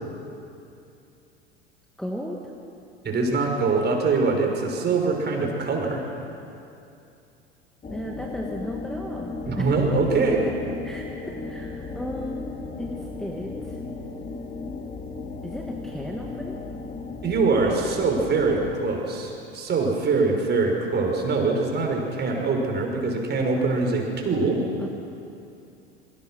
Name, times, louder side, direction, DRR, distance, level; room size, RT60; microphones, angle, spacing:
voice 1, 2.0-2.4 7.9-9.7 10.2-10.5 10.8-13.8 15.4-16.6 24.8-24.9, equal, ahead, -1 dB, 2.3 m, -35 dB
voice 2, 3.0-6.0 9.5-10.4 17.2-24.6, right 3 dB, 30° right, 1 dB, 5.9 m, -23 dB
sound 1, 7.8-18.8, left 3 dB, 20° left, 2.6 m, -35 dB
27.0 x 23.5 x 6.5 m, 2.6 s
figure-of-eight pair, 75°, 33 cm